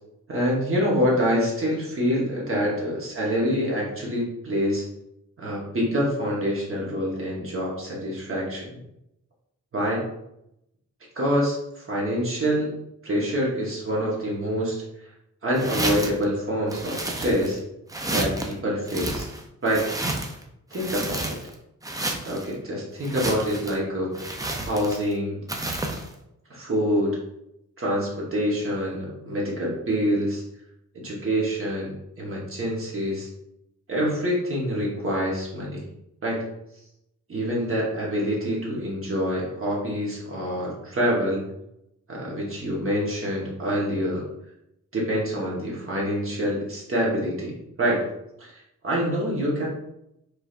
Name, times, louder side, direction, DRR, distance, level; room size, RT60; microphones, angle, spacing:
voice 1, 0.3-4.8 5.4-8.7 9.7-10.0 11.2-12.7 13.0-14.8 15.4-17.6 18.1-19.3 19.6-19.9 20.7-21.4 22.2-24.3 24.7-25.4 26.5-27.2 27.8-30.4 30.9-31.9 32.2-33.3 33.9-35.8 36.2-36.5 37.3-41.4 42.1-44.2 44.9-48.0 48.4-49.7, equal, 40° right, -4 dB, 1.1 m, -26 dB
sound 1, 15.5-16.2 16.7-17.6 17.9-18.5 18.9-20.4 20.7-21.5 21.8-22.5 23.0-23.8 24.1-25.1 25.5-26.1, right 2 dB, 10° right, 0.4 m, -30 dB
4.7 x 3.2 x 2.4 m, 0.82 s
wide cardioid pair, 150°, 32 cm